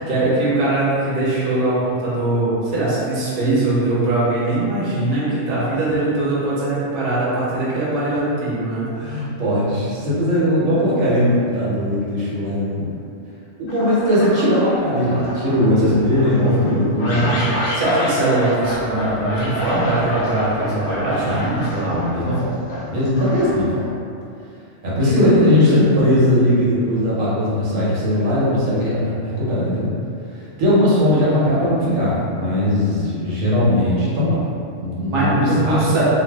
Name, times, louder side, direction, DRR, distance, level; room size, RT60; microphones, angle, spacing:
voice 1, 0.0-8.9 17.0-22.0 25.1-25.8 35.1-36.1, right 2 dB, 50° right, -8 dB, 0.9 m, -21 dB
voice 2, 8.9-12.9 13.6-17.6 20.6-21.0 21.3-21.5 21.8-22.6 22.8-23.9 24.8-29.9 30.6-34.4 34.8-35.8, left 1 dB, 80° right, -8 dB, 1.2 m, -19 dB
sound 1, 13.7-14.6 15.0-23.9, equal, 65° left, 0.8 m, -29 dB
2.6 x 2.3 x 3.3 m, 2.5 s
omnidirectional pair, 1.3 m